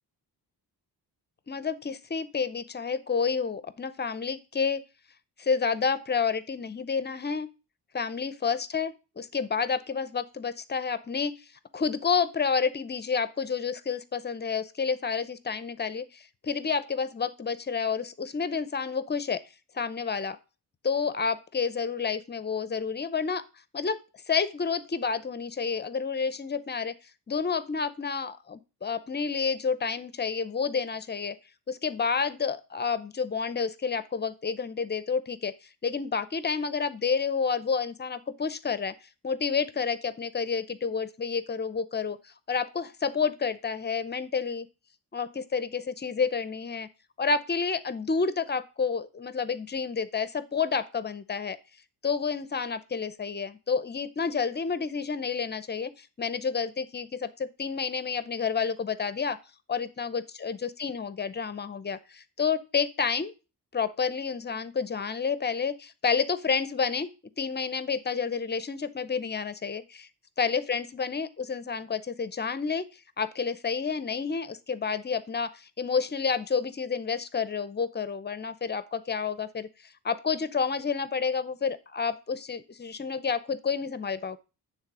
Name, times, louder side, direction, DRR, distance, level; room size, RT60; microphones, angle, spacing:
voice 1, 1.5-4.8 5.4-7.5 7.9-11.3 11.7-19.4 19.7-20.4 20.8-23.4 23.7-24.0 24.3-26.9 27.3-31.3 31.7-35.5 35.8-38.9 39.2-44.7 45.1-46.9 47.2-51.6 52.0-59.4 59.7-63.3 63.7-67.1 67.4-70.1 70.4-72.9 73.2-84.4, left 5 dB, 25° left, 15 dB, 0.6 m, -29 dB
9.5 x 3.7 x 6.0 m, 0.30 s
wide cardioid pair, 135°, 40 cm